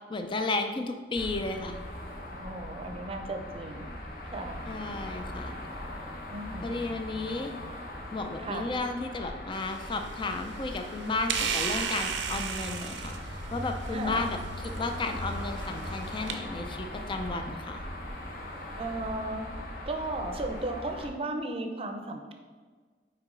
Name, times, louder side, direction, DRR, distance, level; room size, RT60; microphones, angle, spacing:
voice 1, 0.1-1.8 4.7-5.5 6.6-7.5 8.1-13.2 13.5-17.8, left 3 dB, 25° left, 6 dB, 0.4 m, -33 dB
sound 1, 1.1-21.1, left 1 dB, 50° left, 1.0 m, -40 dB
voice 2, 2.4-3.9 4.3-4.7 6.3-6.8 8.4-8.7 13.9-14.3 18.7-19.5 19.9-22.3, right 2 dB, 30° right, 5 dB, 0.6 m, -35 dB
sound 2, 9.5-16.3, right 6 dB, 85° right, 0.6 m, -36 dB
6.0 x 4.6 x 3.7 m, 1.5 s
head